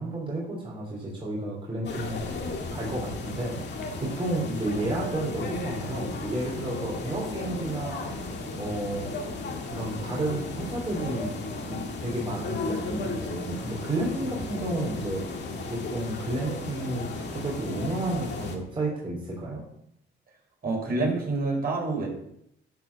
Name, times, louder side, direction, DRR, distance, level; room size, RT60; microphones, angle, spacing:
voice 1, 0.0-2.4 2.7-8.1 8.5-9.1 9.7-11.4 11.7-19.6, right 1 dB, 25° right, -4 dB, 3.5 m, -32 dB
sound 1, 1.8-18.6, left 3 dB, 60° left, 2.0 m, -35 dB
voice 2, 20.6-22.1, right 3 dB, 50° right, -1 dB, 4.4 m, -27 dB
11.5 x 4.9 x 6.8 m, 0.75 s
cardioid pair, 90°, 20 cm